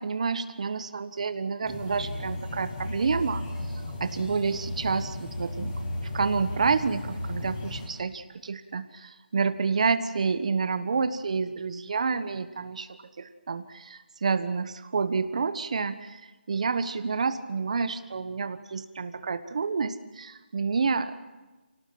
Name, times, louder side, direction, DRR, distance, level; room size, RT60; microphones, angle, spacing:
voice 1, 0.0-3.5 4.0-5.7 6.1-16.2 16.5-21.2, right 5 dB, 35° right, 12 dB, 1.2 m, -29 dB
sound 1, 1.6-7.9, left 1 dB, 20° left, 6.2 m, -35 dB
30.0 x 18.5 x 7.7 m, 1.2 s
figure-of-eight pair, 170°, 6 cm